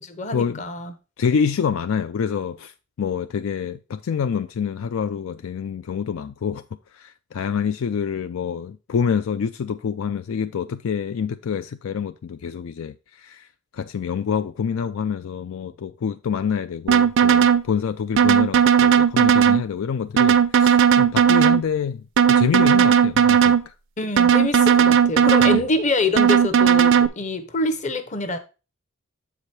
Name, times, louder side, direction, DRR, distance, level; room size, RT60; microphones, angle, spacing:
voice 1, 0.0-0.9 24.0-28.4, left 2 dB, 35° left, 0.9 m, -25 dB
voice 2, 1.2-6.6 6.9-13.5 13.7-23.7 25.5-25.6, left 6 dB, 65° left, 0.3 m, -27 dB
sound 1, 16.9-17.6 18.2-19.6 20.2-21.6 22.2-23.6 24.2-25.6 26.2-27.1, right 7 dB, 55° right, 0.4 m, -16 dB
7.3 x 5.0 x 4.3 m
head